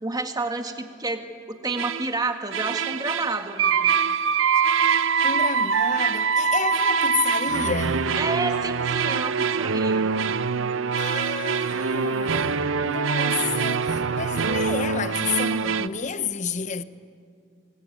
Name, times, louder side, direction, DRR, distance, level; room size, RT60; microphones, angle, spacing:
voice 1, 0.0-1.2 1.5-3.9 8.1-10.1, right 3 dB, 20° right, 1.8 m, -29 dB
sound 1, 1.8-2.1 2.5-15.9, right 5 dB, 80° right, 0.7 m, -24 dB
voice 2, 5.2-8.1 11.0-16.8, left 6 dB, 40° left, 0.9 m, -30 dB
25.5 x 22.0 x 9.4 m
head